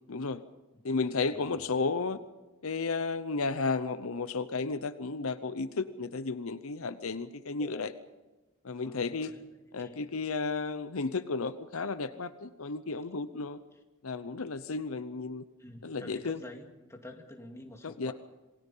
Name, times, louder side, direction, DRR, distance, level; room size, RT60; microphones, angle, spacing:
voice 1, 0.1-0.4 0.8-2.2 2.6-7.9 8.6-9.3 9.7-13.6 14.0-15.4 15.8-16.4 17.8-18.1, left 4 dB, 65° left, 12 dB, 0.8 m, -33 dB
voice 2, 8.8-9.5 9.8-10.1 15.6-18.1, left 1 dB, 15° left, 2 dB, 2.2 m, -48 dB
27.5 x 20.0 x 5.6 m, 1.1 s
head